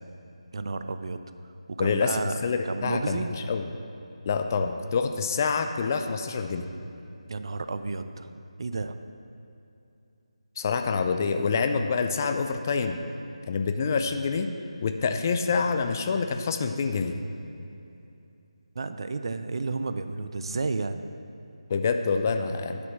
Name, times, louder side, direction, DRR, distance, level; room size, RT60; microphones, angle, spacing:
voice 1, 0.5-1.2 1.8-2.4 2.6-3.3 7.3-8.9 18.8-21.0, right 3 dB, 50° right, 10 dB, 0.4 m, -32 dB
voice 2, 1.8-3.7 4.3-6.7 10.6-13.0 13.5-14.5 14.8-17.2 21.7-22.8, left 5 dB, 30° left, 7 dB, 0.5 m, -26 dB
11.0 x 5.1 x 6.2 m, 2.7 s
figure-of-eight pair, 155°, 3 cm